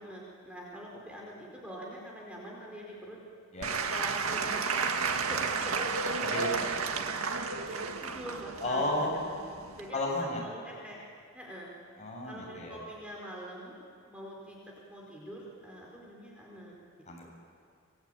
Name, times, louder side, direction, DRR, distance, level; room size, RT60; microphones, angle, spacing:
voice 1, 0.0-3.2 3.9-5.9 7.6-11.0 11.3-11.7 12.2-13.8 14.1-16.8 17.2-17.3, equal, 5° right, -3 dB, 4.4 m, -44 dB
Applause / Crowd, 3.6-9.9, right 5 dB, 85° right, 1.8 m, -32 dB
voice 2, 6.2-6.7 8.6-9.2 9.9-10.4 12.0-12.8 17.1-17.3, left 1 dB, 35° left, -1 dB, 7.7 m, -32 dB
26.0 x 23.0 x 9.0 m, 2.3 s
head